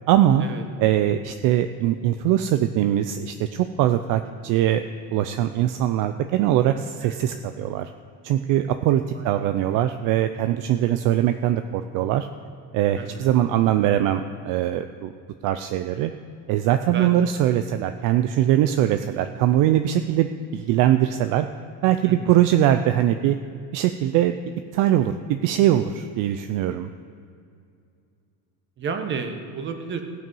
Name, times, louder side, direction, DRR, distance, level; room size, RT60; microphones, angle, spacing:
voice 1, 0.1-0.5 0.8-7.9 8.2-12.3 12.7-15.1 15.4-16.1 16.5-21.5 21.8-23.4 23.7-24.3 24.7-26.9, right 12 dB, 60° right, 9 dB, 0.5 m, -21 dB
voice 2, 13.0-13.3 16.9-17.2 22.0-22.4 28.8-30.0, right 5 dB, 30° right, 6 dB, 1.1 m, -31 dB
16.5 x 6.0 x 5.4 m, 2.4 s
cardioid pair, 160°, 37 cm